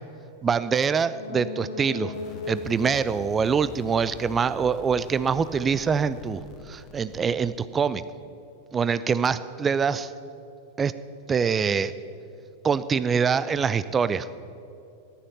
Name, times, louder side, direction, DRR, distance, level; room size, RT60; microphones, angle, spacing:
voice 1, 0.4-2.1 2.5-8.0 8.7-10.1 10.8-10.9 11.3-11.9 12.6-14.3, right 6 dB, 20° right, 15 dB, 0.5 m, -24 dB
sound 1, 1.0-4.7 5.0-5.1, left 2 dB, 70° left, 2.7 m, -38 dB
sound 2, 2.1-8.2, left 5 dB, 35° left, 1.1 m, -45 dB
14.0 x 12.0 x 5.6 m, 2.6 s
figure-of-eight pair, 90°, 0 cm